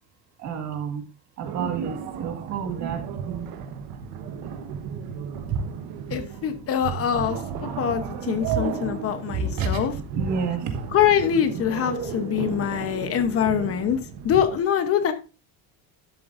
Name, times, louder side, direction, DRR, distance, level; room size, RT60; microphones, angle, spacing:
voice 1, 0.4-1.0 1.4-3.5 5.5-5.6 8.4-8.6 9.6-10.8, right 6 dB, 45° right, 1.8 m, -30 dB
sound 1, 1.4-14.6, right 7 dB, 70° right, 1.2 m, -33 dB
voice 2, 6.1-9.9 10.9-15.1, left 9 dB, 35° left, 0.9 m, -24 dB
12.5 x 7.7 x 2.6 m
cardioid pair, 175°, 38 cm